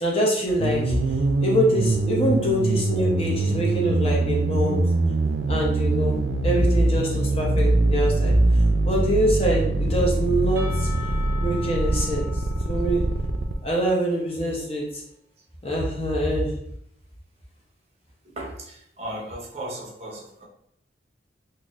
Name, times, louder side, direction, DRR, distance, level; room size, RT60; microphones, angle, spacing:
voice 1, 0.0-4.8 5.5-8.4 8.8-10.9 11.4-13.0 13.6-15.0 15.6-16.5, equal, 30° left, -2 dB, 0.7 m, -24 dB
sound 1, 0.6-13.5, right 2 dB, 80° right, 0.4 m, -23 dB
Percussion / Church bell, 10.6-14.5, left 5 dB, 15° right, 0.3 m, -41 dB
voice 2, 18.2-20.5, right 1 dB, 35° right, -3 dB, 0.7 m, -36 dB
3.9 x 2.7 x 2.4 m, 0.70 s
head